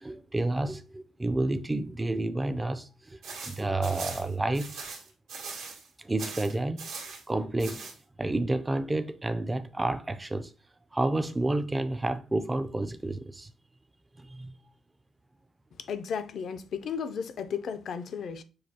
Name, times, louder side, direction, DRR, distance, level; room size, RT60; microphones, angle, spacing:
voice 1, 0.0-3.2 3.4-4.9 6.0-6.9 7.3-7.9 8.2-10.5 10.9-13.5 14.2-14.5, right 2 dB, 15° right, 0.4 m, -30 dB
sound 1, 3.2-5.9 6.2-7.2 7.6-8.0, right 4 dB, 90° right, 1.6 m, -40 dB
voice 2, 15.9-18.4, left 6 dB, 60° left, 0.5 m, -34 dB
6.3 x 2.3 x 2.8 m
cardioid pair, 90°, 0 cm